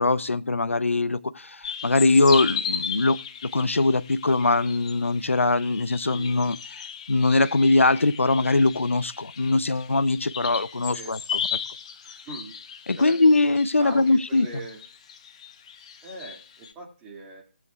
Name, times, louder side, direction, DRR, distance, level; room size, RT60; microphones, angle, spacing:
voice 1, 0.0-6.6 7.1-11.4 12.9-14.5, left 2 dB, 80° left, 0.5 m, -22 dB
sound 1, 1.6-16.7, left 7 dB, 30° left, 0.8 m, -36 dB
voice 2, 12.2-12.6 13.0-13.1 13.8-14.8 16.0-17.4, right 2 dB, 15° right, 2.2 m, -40 dB
18.0 x 8.3 x 2.4 m
figure-of-eight pair, 155°, 7 cm